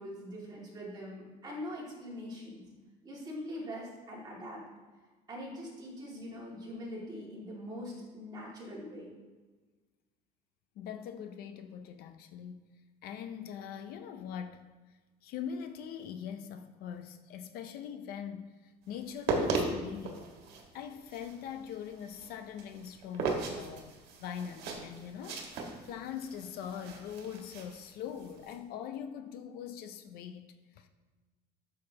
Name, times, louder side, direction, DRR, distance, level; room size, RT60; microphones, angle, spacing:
voice 1, 0.0-2.6 3.0-4.6 5.3-9.1, equal, 25° right, 2.2 m, -42 dB
voice 2, 10.8-12.7 13.0-14.7 15.2-20.3 20.7-30.9, left 8 dB, 60° left, 0.6 m, -42 dB
sound 1, 19.0-28.5, right 4 dB, 70° right, 1.6 m, -37 dB
12.5 x 6.6 x 2.9 m
cardioid pair, 175°, 17 cm